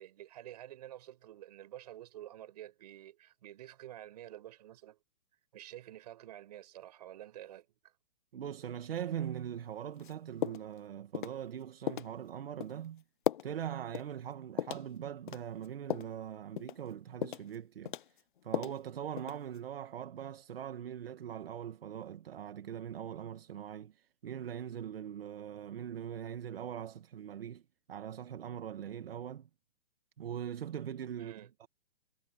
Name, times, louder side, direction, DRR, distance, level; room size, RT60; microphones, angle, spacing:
voice 1, 0.0-5.0 5.5-7.9 31.2-31.5, right 13 dB, 40° right, 5.8 m, -49 dB
voice 2, 8.3-13.0 13.4-27.6 27.9-29.5 30.2-31.3 31.6-31.7, right 9 dB, 65° right, 1.4 m, -41 dB
sound 1, 10.0-10.1 10.4-10.8 11.1-11.4 11.9-12.1 12.6-12.8 13.3-13.5 13.9-14.1 14.6-14.9 15.3-16.2 16.6-16.8 17.2-17.6 17.9-18.8 19.2-19.6, left 10 dB, 55° left, 0.5 m, -36 dB
hypercardioid pair, 175°, 31 cm